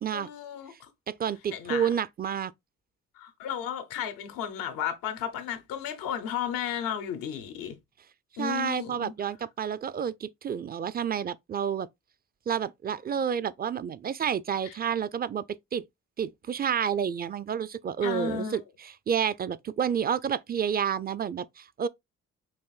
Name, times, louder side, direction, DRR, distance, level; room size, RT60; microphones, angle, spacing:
voice 1, 0.1-0.9 1.5-1.9 3.2-7.7 8.4-9.1 14.6-14.7 18.0-18.6, left 9 dB, 90° left, 0.7 m, -34 dB
voice 2, 1.1-2.5 8.4-11.9 12.5-15.4 15.7-15.8 16.2-21.9, right 8 dB, 30° right, 0.4 m, -30 dB
5.8 x 2.6 x 2.3 m
supercardioid pair, 45°, 33 cm